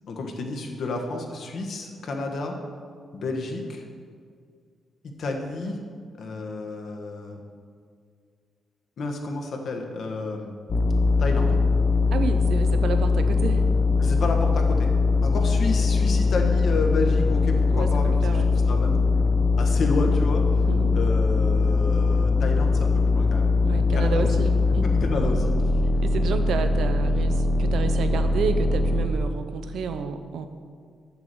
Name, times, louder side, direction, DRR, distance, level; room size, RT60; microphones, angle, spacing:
voice 1, 0.1-2.6 3.1-3.9 5.0-5.8 6.2-7.4 9.0-10.5 11.2-11.6 14.0-14.9 15.2-19.0 19.6-20.7 20.9-23.5 23.9-24.3 24.8-25.5, left 2 dB, 55° left, 3 dB, 1.3 m, -30 dB
sound 1, 10.7-29.1, left 3 dB, 35° left, 0.8 m, -21 dB
voice 2, 12.1-13.6 17.7-18.5 20.7-20.9 23.6-24.9 26.0-30.5, right 5 dB, 75° right, 8 dB, 0.7 m, -30 dB
7.8 x 7.0 x 6.9 m, 2.1 s
cardioid pair, 145°, 0 cm